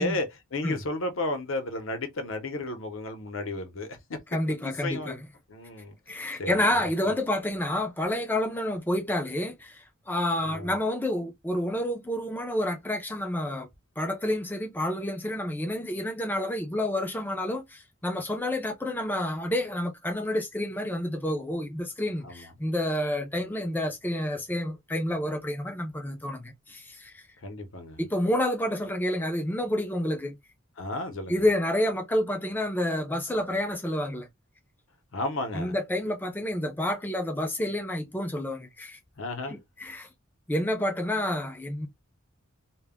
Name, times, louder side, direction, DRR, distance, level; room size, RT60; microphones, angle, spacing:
voice 1, 0.0-4.2 4.6-5.2 5.5-6.0 6.4-6.9 10.5-10.7 22.2-22.5 27.4-28.0 30.8-31.4 35.1-35.8 39.2-39.6, left 2 dB, 65° left, 0.7 m, -33 dB
voice 2, 4.3-5.3 6.1-13.7 14.0-27.2 28.0-30.4 31.3-34.3 35.5-39.0 39.5-40.1 40.5-41.9, left 1 dB, 10° left, 0.4 m, -29 dB
2.2 x 2.0 x 3.5 m
head